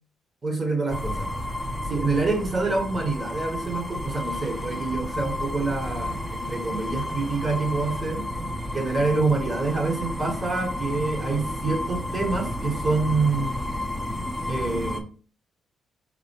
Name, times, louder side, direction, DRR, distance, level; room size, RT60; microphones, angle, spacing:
voice 1, 0.4-1.3 1.9-8.3 8.7-13.6 14.5-15.1, right 3 dB, 30° right, 4 dB, 1.4 m, -26 dB
sound 1, 0.9-15.0, left 1 dB, ahead, 0.6 m, -31 dB
4.0 x 3.9 x 3.2 m, 0.40 s
cardioid pair, 90°, 0 cm